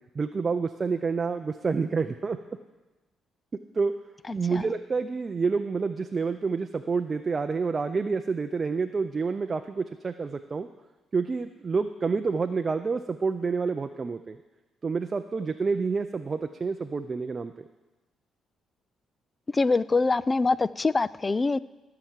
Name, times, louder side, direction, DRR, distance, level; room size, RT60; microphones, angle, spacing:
voice 1, 0.1-2.4 3.7-3.9 4.3-10.7 11.1-14.4 14.8-17.5, right 4 dB, 35° right, 8 dB, 0.5 m, -28 dB
voice 2, 19.5-21.6, left 3 dB, 25° left, 19 dB, 0.3 m, -24 dB
14.5 x 5.9 x 7.4 m, 1.2 s
cardioid pair, 90°, 0 cm